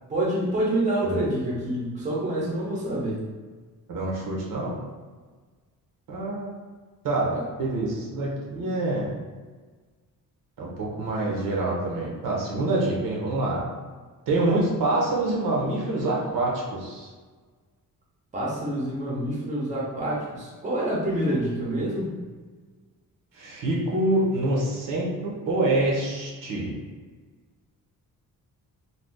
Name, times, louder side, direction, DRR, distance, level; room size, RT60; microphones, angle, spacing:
voice 1, 0.1-3.2 7.3-7.4 18.3-22.1, right 1 dB, 20° right, -5 dB, 0.7 m, -27 dB
voice 2, 3.9-4.8 6.1-6.5 7.0-9.1 10.6-10.7 11.0-13.6 14.3-17.1 23.3-26.7, right 2 dB, 65° right, -3 dB, 0.8 m, -26 dB
2.7 x 2.3 x 3.5 m, 1.4 s
wide cardioid pair, 165°, 35 cm